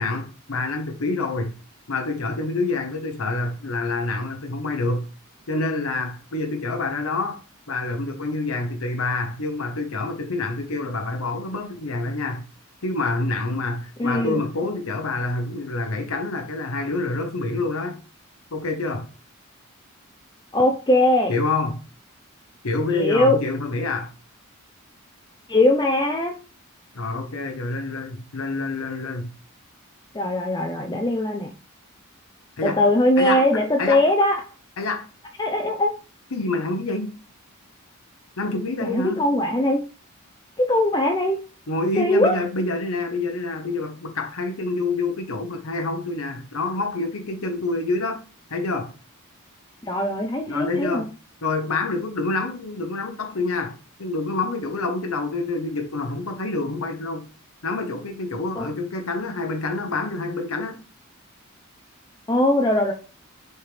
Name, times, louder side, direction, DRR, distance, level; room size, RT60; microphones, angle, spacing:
voice 1, 0.0-1.5 1.9-5.1 5.5-7.4 7.7-12.4 12.8-18.0 18.5-19.1 21.3-21.8 22.6-24.1 26.9-29.3 32.6-32.8 33.2-34.0 34.8-35.1 36.3-37.1 38.4-39.2 41.7-48.2 48.5-48.9 50.5-51.1 51.4-57.3 57.6-60.8, left 3 dB, 75° left, 1.0 m, -27 dB
voice 2, 14.0-14.4 20.5-21.3 22.9-23.4 25.5-26.3 30.1-31.5 32.6-34.4 35.4-35.9 38.8-39.8 40.6-41.4 42.0-42.4 49.8-51.0 58.6-58.7 62.3-62.9, left 1 dB, 20° left, 0.6 m, -20 dB
6.7 x 4.4 x 3.4 m
head